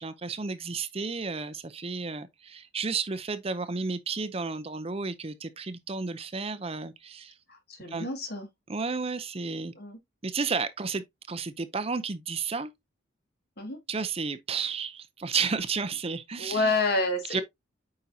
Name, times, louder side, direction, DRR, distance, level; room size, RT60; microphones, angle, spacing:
voice 1, 0.0-7.3 7.9-8.1 8.7-9.7 10.2-12.7 13.9-16.7 17.3-17.4, right 4 dB, 30° right, 0.6 m, -32 dB
voice 2, 7.5-8.5 9.8-10.0 13.6-13.8 16.4-17.4, left 3 dB, 50° left, 2.2 m, -29 dB
8.7 x 5.3 x 2.8 m
head